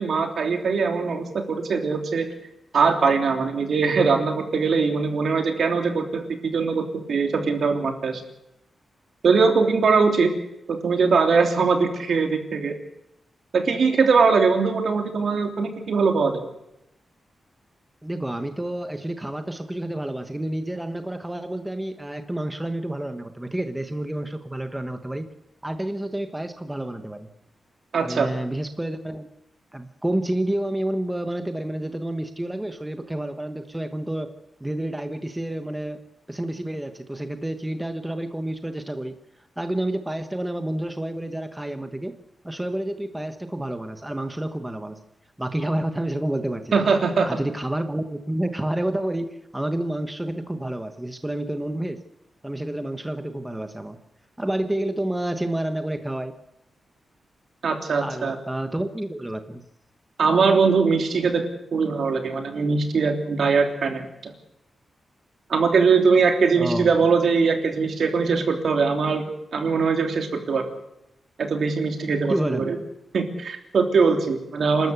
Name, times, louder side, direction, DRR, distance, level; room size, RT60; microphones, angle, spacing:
voice 1, 0.0-2.3 2.7-8.2 9.2-10.3 10.7-12.7 13.5-16.5 27.9-28.3 46.7-47.3 57.6-58.3 60.2-61.4 61.7-64.3 65.5-70.7 71.4-72.8 73.1-74.9, right 5 dB, 65° right, 5 dB, 3.2 m, -21 dB
voice 2, 18.0-25.3 25.6-27.3 28.0-29.3 29.7-34.3 34.6-36.0 36.3-39.1 39.6-42.1 42.4-45.0 45.4-46.8 47.3-52.0 52.4-54.0 54.4-56.3 58.0-59.6 66.6-66.9 72.3-72.6, right 1 dB, 10° right, 8 dB, 1.2 m, -29 dB
28.5 x 13.0 x 8.2 m, 0.85 s
wide cardioid pair, 140°, 0 cm